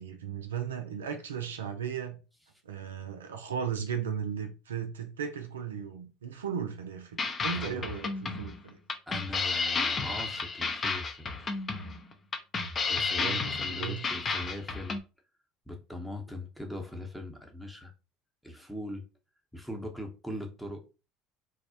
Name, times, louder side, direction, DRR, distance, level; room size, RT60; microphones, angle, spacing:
voice 1, 0.0-2.2 2.6-8.8 13.2-14.1, right 7 dB, 85° right, 0.3 m, -36 dB
sound 1, 7.2-15.0, left 4 dB, 35° left, 0.5 m, -32 dB
voice 2, 7.5-7.9 9.1-11.5 12.9-15.0 15.7-17.9 18.4-19.0 19.5-20.8, left 1 dB, ahead, 0.7 m, -40 dB
2.3 x 2.0 x 2.7 m
hypercardioid pair, 70°, 0 cm